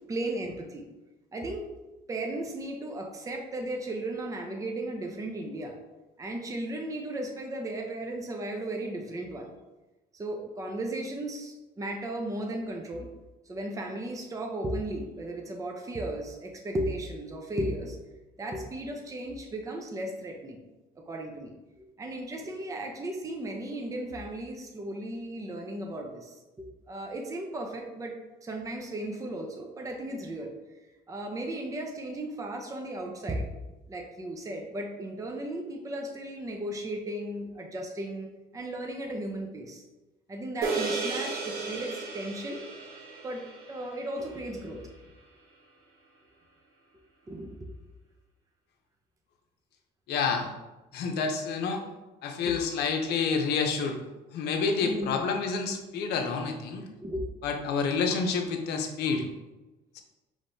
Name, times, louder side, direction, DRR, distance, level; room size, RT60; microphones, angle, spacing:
voice 1, 0.1-0.9 1.3-5.7 6.2-9.5 10.1-13.1 13.5-18.0 18.4-20.6 21.0-21.5 22.0-28.2 28.4-30.5 31.1-33.5 33.9-39.8 40.3-42.6 43.2-44.9 47.3-47.6 52.4-52.5 54.8-55.2 57.0-57.2, right 1 dB, 20° right, 2 dB, 0.6 m, -35 dB
sound 1, 40.6-45.2, right 4 dB, 65° right, 1.0 m, -35 dB
voice 2, 50.1-50.5 50.9-51.8 52.2-54.0 54.3-56.9 57.4-59.3 59.9-60.0, left 5 dB, 75° left, 4 dB, 0.7 m, -28 dB
5.2 x 3.2 x 2.7 m, 1.1 s
cardioid pair, 110°, 17 cm